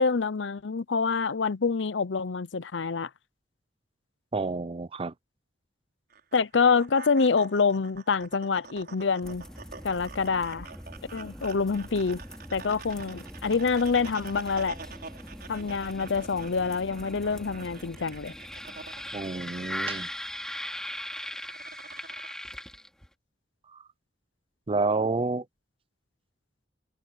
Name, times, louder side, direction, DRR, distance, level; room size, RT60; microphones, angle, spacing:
voice 1, 0.0-3.1 6.3-9.4 9.8-10.7 11.1-12.2 12.5-14.8 15.5-18.3, left 5 dB, 80° left, 0.7 m, -26 dB
voice 2, 4.3-5.1 19.1-20.1 23.7-23.8 24.7-25.4, right 3 dB, 30° right, 0.5 m, -29 dB
sound 1, 6.1-22.3, right 5 dB, 60° right, 5.6 m, -48 dB
sound 2, 9.2-23.1, equal, 5° left, 3.0 m, -41 dB
Sliding door, 11.6-17.2, right 2 dB, 85° right, 4.4 m, -59 dB
head